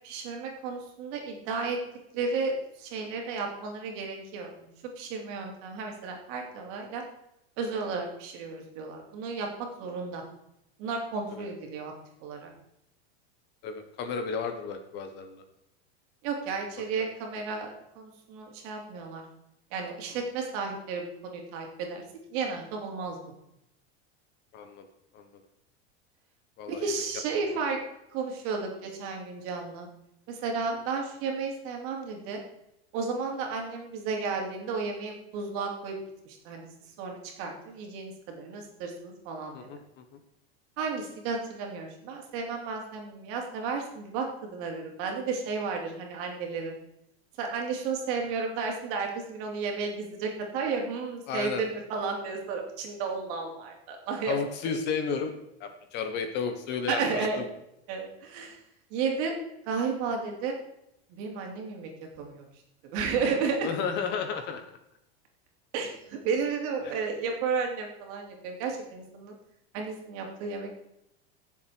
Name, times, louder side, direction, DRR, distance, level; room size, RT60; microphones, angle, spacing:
voice 1, 0.0-1.8 2.1-2.5 2.8-4.7 5.0-7.0 7.6-10.2 10.8-11.9 12.2-12.5 16.2-19.2 19.7-22.0 22.3-23.2 26.7-27.8 28.1-29.9 30.3-32.4 32.9-35.9 36.3-36.7 37.0-39.7 40.8-46.7 47.4-54.4 56.9-57.4 57.9-58.6 58.9-59.3 59.7-60.6 61.1-62.5 62.9-63.7 65.7-69.3 69.7-70.8, right 5 dB, 45° right, 2 dB, 3.1 m, -33 dB
voice 2, 13.6-15.4 24.5-24.8 25.1-25.2 26.6-26.9 27.5-27.6 39.5-40.0 51.3-51.6 54.3-55.3 55.6-57.4 63.6-64.6 66.8-67.0, left 6 dB, 35° left, 7 dB, 1.2 m, -33 dB
17.0 x 7.5 x 4.6 m, 0.83 s
supercardioid pair, 165°, 32 cm